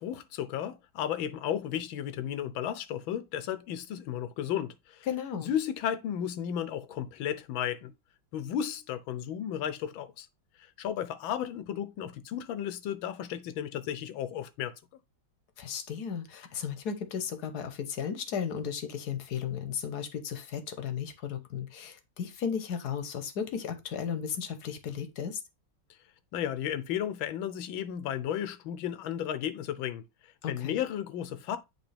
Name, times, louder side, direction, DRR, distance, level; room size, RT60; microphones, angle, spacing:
voice 1, 0.0-5.1 5.4-7.9 8.3-10.3 10.6-14.7 26.3-30.0 30.5-31.6, left 10 dB, 90° left, 1.5 m, -34 dB
voice 2, 5.1-5.5 15.6-25.4 30.4-30.8, left 7 dB, 60° left, 1.3 m, -35 dB
8.1 x 3.6 x 3.3 m
omnidirectional pair, 2.1 m